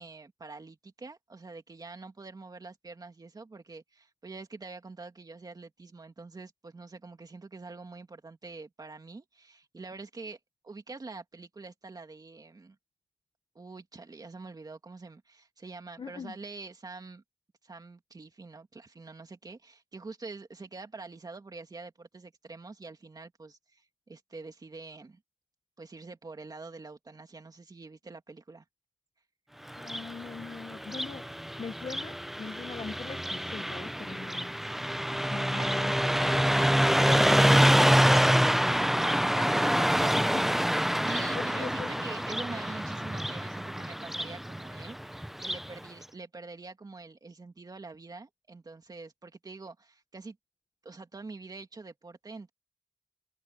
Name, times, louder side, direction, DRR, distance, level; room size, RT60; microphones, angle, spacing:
voice 1, 0.0-10.4 10.6-12.8 13.5-17.2 17.6-25.2 25.8-28.6 35.5-35.8 39.0-39.1 41.0-50.4 50.8-52.5, right 3 dB, 40° right, 2.6 m, -45 dB
voice 2, 16.0-16.3 29.8-31.2 31.6-34.5 35.3-36.5 37.1-37.6 39.3-40.5 41.3-41.9, left 5 dB, 60° left, 1.0 m, -41 dB
Car passing by, 29.7-45.7, equal, 5° right, 0.6 m, -26 dB
wide cardioid pair, 120°, 10 cm